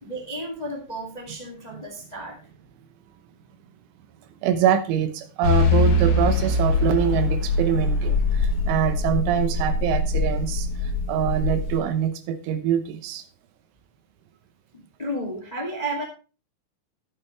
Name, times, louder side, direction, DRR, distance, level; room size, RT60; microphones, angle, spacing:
voice 1, 0.0-2.4 15.0-16.0, right 1 dB, 20° left, 1 dB, 1.2 m, -32 dB
voice 2, 4.4-13.2, right 9 dB, 85° right, 9 dB, 3.4 m, -24 dB
sound 1, 5.4-11.8, left 3 dB, 55° left, 2.4 m, -23 dB
13.0 x 8.8 x 3.3 m, 0.33 s
omnidirectional pair, 5.4 m